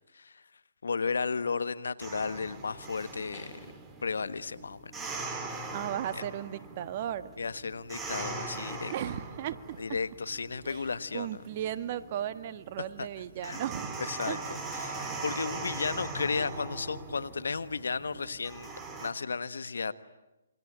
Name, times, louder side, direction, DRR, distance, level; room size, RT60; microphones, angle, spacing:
voice 1, 0.8-3.7 4.0-5.2 7.4-8.9 9.8-11.4 13.0-13.1 13.4-13.6 14.0-14.4 14.7-18.7 19.0-19.9, left 5 dB, 80° left, 1.4 m, -34 dB
sound 1, 2.0-19.1, right 3 dB, 10° right, 3.2 m, -41 dB
voice 2, 5.7-7.3 8.9-9.8 10.6-14.0 14.3-14.4, right 11 dB, 40° right, 1.5 m, -36 dB
28.0 x 24.0 x 8.9 m
hypercardioid pair, 145°, 0 cm